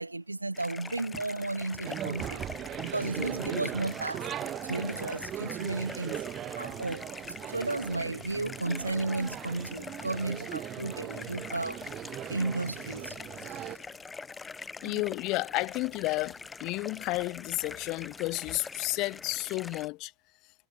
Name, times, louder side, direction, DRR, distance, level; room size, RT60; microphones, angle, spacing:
voice 1, 0.0-2.4 2.8-4.3 4.6-6.2 6.6-7.0 7.5-11.8 12.3-13.2 13.4-13.8 14.9-15.0, right 2 dB, 85° right, 0.5 m, -33 dB
sound 1, 0.5-19.9, left 4 dB, 15° left, 1.0 m, -44 dB
sound 2, 1.1-4.2 4.5-7.6, right 3 dB, 10° right, 7.6 m, -54 dB
sound 3, 1.8-13.8, right 12 dB, 30° right, 1.0 m, -39 dB
voice 2, 14.8-20.1, left 22 dB, 40° left, 0.4 m, -32 dB
figure-of-eight pair, 90°, 0 cm